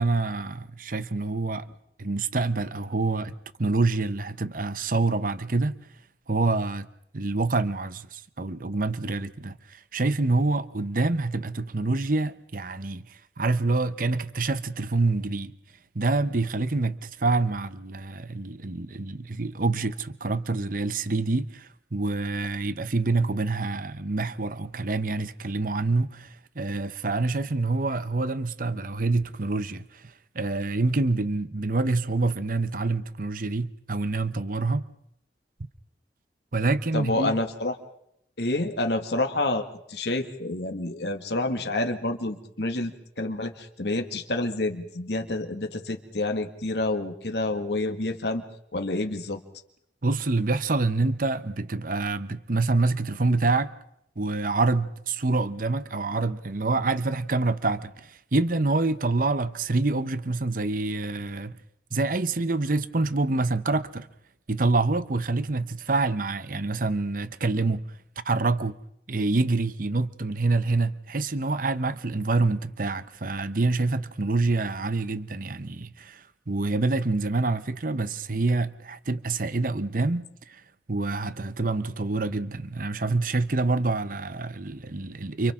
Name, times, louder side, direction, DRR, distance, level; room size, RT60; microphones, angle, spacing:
voice 1, 0.0-1.6 2.0-5.8 6.3-6.9 7.1-15.5 15.9-34.9 36.5-37.3 50.0-53.7 54.2-61.6 61.9-64.1 64.5-67.8 68.2-68.8 69.1-80.6 80.9-85.5, right 3 dB, 50° right, 0.9 m, -26 dB
voice 2, 36.9-37.8 38.4-39.6 39.9-48.4 48.7-49.4, left 2 dB, 75° left, 2.1 m, -28 dB
29.5 x 29.5 x 3.8 m
head